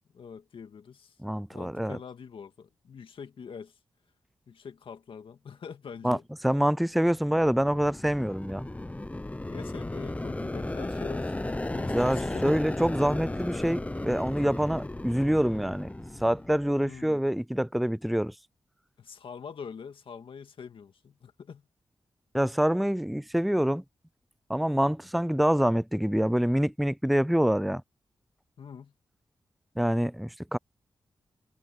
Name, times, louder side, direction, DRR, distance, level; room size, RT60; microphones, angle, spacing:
voice 1, 0.1-1.1 1.5-3.7 4.5-6.2 9.4-12.5 16.8-17.2 19.0-21.6 28.6-28.9, left 6 dB, 75° left, 2.0 m, -44 dB
voice 2, 1.2-2.0 6.0-6.2 6.4-8.7 11.8-15.9 16.2-18.3 22.3-23.8 24.5-27.8 29.8-30.6, equal, ahead, 0.3 m, -26 dB
sound 1, 7.1-17.0, left 2 dB, 15° left, 0.7 m, -35 dB
cardioid pair, 60°, 9 cm